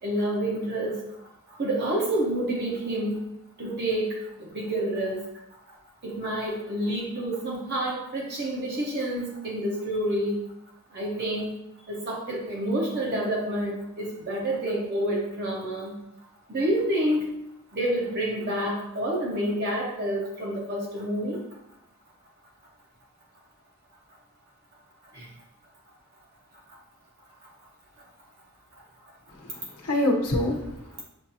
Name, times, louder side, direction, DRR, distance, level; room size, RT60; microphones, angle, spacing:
voice 1, 0.0-3.3 3.6-5.3 5.7-5.8 6.0-10.5 10.9-11.5 11.9-15.9 16.5-17.3 17.7-21.4 25.1-25.3 26.7-26.8 28.7-28.8, right 1 dB, 50° right, -3 dB, 0.8 m, -28 dB
voice 2, 29.3-31.0, left 1 dB, 90° left, -1 dB, 0.8 m, -27 dB
7.0 x 2.4 x 2.7 m, 0.84 s
head